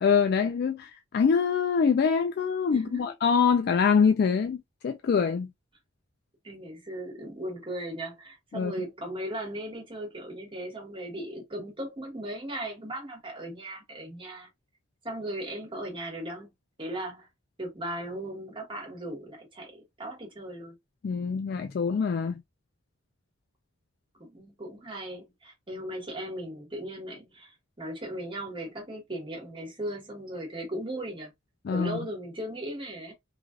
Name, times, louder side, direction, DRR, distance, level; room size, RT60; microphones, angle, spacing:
voice 1, 0.0-5.5 8.5-8.7 21.0-22.4 31.7-32.0, left 6 dB, 55° left, 0.3 m, -24 dB
voice 2, 2.7-3.1 6.4-14.5 15.0-16.5 16.8-17.3 17.6-20.7 24.2-31.3 31.7-33.1, right 1 dB, 25° right, 1.3 m, -37 dB
3.2 x 2.4 x 2.4 m
head